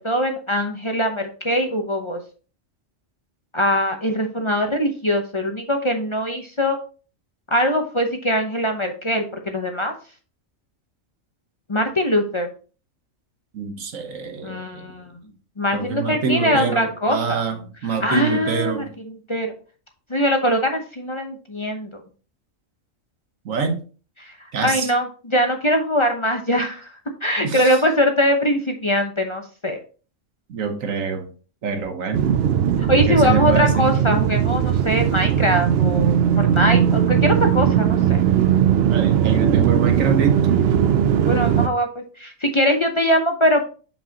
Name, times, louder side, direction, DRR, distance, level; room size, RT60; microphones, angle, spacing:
voice 1, 0.0-2.2 3.5-6.8 7.5-9.9 11.7-12.5 14.4-15.1 15.6-17.4 18.0-19.5 20.1-22.0 24.2-24.3 24.6-26.9 27.2-29.8 32.9-38.2 41.2-43.7, equal, 25° left, 4 dB, 0.8 m, -22 dB
voice 2, 13.5-14.9 15.7-18.9 23.4-23.8 24.5-24.9 27.4-27.8 30.5-31.3 31.6-32.3 33.1-33.9 38.9-40.4, right 5 dB, 90° right, 6 dB, 1.5 m, -25 dB
sound 1, 32.1-41.7, right 9 dB, 65° right, 0.7 m, -18 dB
7.5 x 5.4 x 2.9 m, 0.37 s
omnidirectional pair, 1.3 m